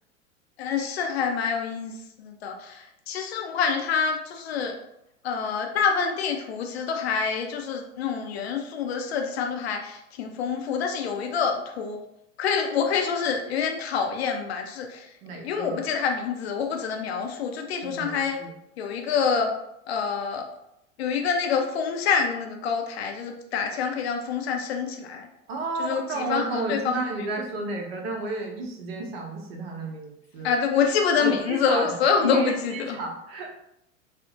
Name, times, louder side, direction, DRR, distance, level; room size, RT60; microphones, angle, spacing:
voice 1, 0.6-1.9 2.2-4.7 5.2-12.0 12.4-15.0 15.4-18.4 18.8-19.5 19.9-20.4 21.0-25.3 25.8-26.8 30.4-33.0, left 6 dB, 50° left, 3 dB, 0.5 m, -26 dB
voice 2, 15.2-15.8 17.8-18.5 25.5-30.6 31.2-33.5, right 3 dB, 45° right, 0 dB, 0.8 m, -32 dB
2.5 x 2.1 x 3.6 m, 0.81 s
figure-of-eight pair, 95°, 41 cm